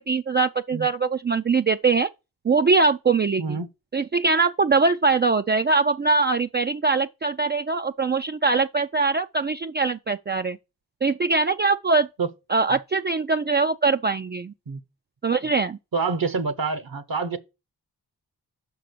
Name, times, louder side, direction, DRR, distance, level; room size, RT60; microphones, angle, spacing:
voice 1, 0.0-2.1 2.4-3.6 3.9-10.6 11.0-12.1 12.5-14.5 15.2-15.8, right 4 dB, 25° right, 0.4 m, -22 dB
voice 2, 15.9-17.4, right 4 dB, 60° right, 0.9 m, -27 dB
5.8 x 4.8 x 6.6 m
cardioid pair, 45°, 40 cm